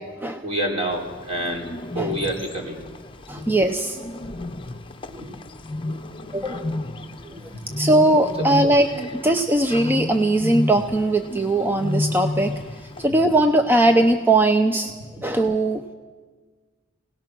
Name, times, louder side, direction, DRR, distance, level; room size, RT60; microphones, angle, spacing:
voice 1, 0.4-1.7 1.9-2.8 3.3-3.5 5.1-5.4 5.9-6.0 7.0-7.8 12.9-13.4 15.2-15.3, right 1 dB, 30° right, 0 dB, 3.8 m, -29 dB
Bird, 0.9-13.1, left 2 dB, 25° left, 0.9 m, -32 dB
voice 2, 3.3-4.0 5.1-5.3 6.3-6.8 7.2-7.3 7.8-14.9 15.2-15.8, right 1 dB, 10° right, 5 dB, 0.6 m, -20 dB
24.5 x 18.0 x 6.1 m, 1.5 s
head